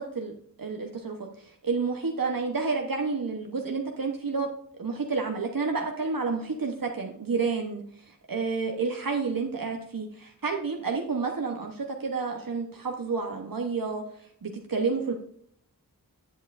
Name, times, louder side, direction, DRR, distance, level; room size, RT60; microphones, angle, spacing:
voice 1, 0.6-4.5 4.7-14.0 14.4-15.1, right 4 dB, 65° right, 2 dB, 0.9 m, -30 dB
10.0 x 8.0 x 2.5 m, 0.64 s
wide cardioid pair, 40°, 36 cm